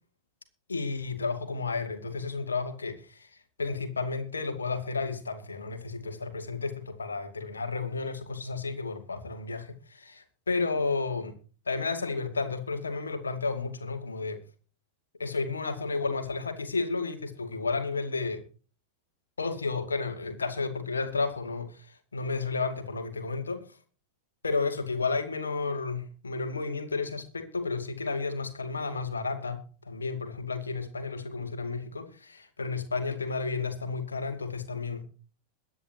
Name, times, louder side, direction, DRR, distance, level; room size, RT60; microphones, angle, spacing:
voice 1, 0.7-3.3 3.6-11.3 11.7-14.4 15.2-18.4 19.4-23.6 24.4-35.1, left 4 dB, 75° left, 2.4 m, -32 dB
22.0 x 9.7 x 2.9 m
figure-of-eight pair, 90°, 0 cm